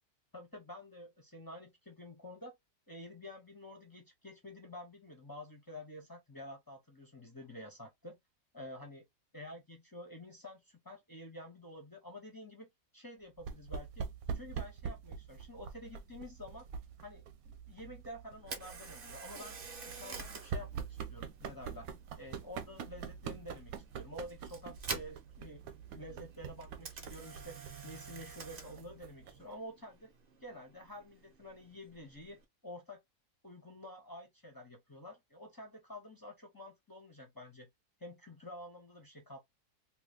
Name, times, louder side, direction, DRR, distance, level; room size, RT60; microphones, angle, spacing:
voice 1, 0.3-2.5 2.9-8.2 8.5-9.0 9.3-14.0 14.3-16.6 17.0-19.6 19.8-21.9 22.2-25.6 25.9-30.1 30.4-32.4 32.6-33.0 33.4-37.7 38.0-39.4, left 1 dB, 30° left, 0.4 m, -49 dB
sound 1, 13.4-29.5, right 7 dB, 75° right, 1.0 m, -45 dB
Camera, 18.4-32.4, right 4 dB, 45° right, 0.8 m, -49 dB
2.9 x 2.3 x 3.4 m
omnidirectional pair, 1.6 m